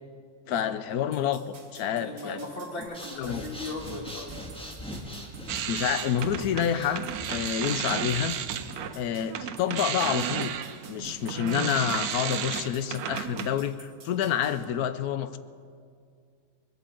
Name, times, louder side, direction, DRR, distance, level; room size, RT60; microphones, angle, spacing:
voice 1, 0.5-2.4 3.2-3.4 5.7-8.4 8.9-10.6 10.9-15.4, left 9 dB, 85° left, 12 dB, 1.2 m, -28 dB
sound 1, 1.1-14.6, right 4 dB, 65° right, 1.8 m, -51 dB
voice 2, 2.0-4.3, left 2 dB, 40° left, 1 dB, 1.8 m, -38 dB
Breathing, 2.8-8.9, equal, 5° left, 1.5 m, -42 dB
sound 2, 5.5-9.0 9.3-13.6, right 9 dB, 85° right, 1.2 m, -33 dB
20.5 x 8.4 x 7.8 m, 2.2 s
omnidirectional pair, 1.5 m